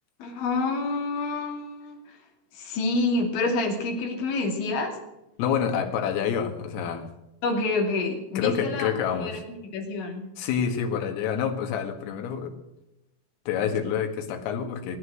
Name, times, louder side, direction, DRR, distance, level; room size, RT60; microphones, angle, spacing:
voice 1, 0.2-2.2 2.5-5.0 7.4-8.9 9.2-10.2, left 3 dB, 65° left, 2 dB, 4.9 m, -28 dB
voice 2, 5.4-7.1 8.4-9.4 10.4-12.5 13.5-15.0, left 8 dB, 85° left, 5 dB, 4.5 m, -27 dB
21.0 x 10.0 x 6.5 m, 0.92 s
omnidirectional pair, 5.9 m